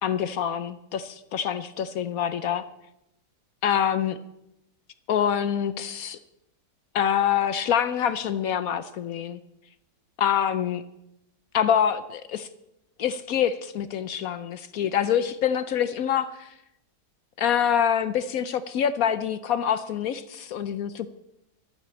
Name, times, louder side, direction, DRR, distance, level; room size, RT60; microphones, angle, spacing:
voice 1, 0.0-2.6 3.6-4.2 5.1-6.2 6.9-9.4 10.2-10.8 11.5-12.5 13.0-16.5 17.4-21.1, left 9 dB, 65° left, 13 dB, 1.0 m, -25 dB
11.0 x 9.4 x 8.4 m, 0.87 s
omnidirectional pair, 1.8 m